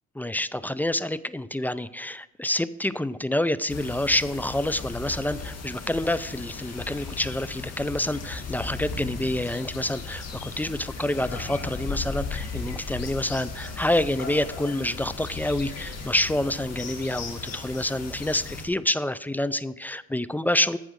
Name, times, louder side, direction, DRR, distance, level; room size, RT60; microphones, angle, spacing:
voice 1, 0.2-20.8, left 1 dB, 5° left, 16 dB, 0.3 m, -27 dB
sound 1, 3.7-18.6, left 4 dB, 55° left, 2.0 m, -36 dB
14.5 x 4.9 x 6.4 m, 0.91 s
cardioid pair, 90°, 30 cm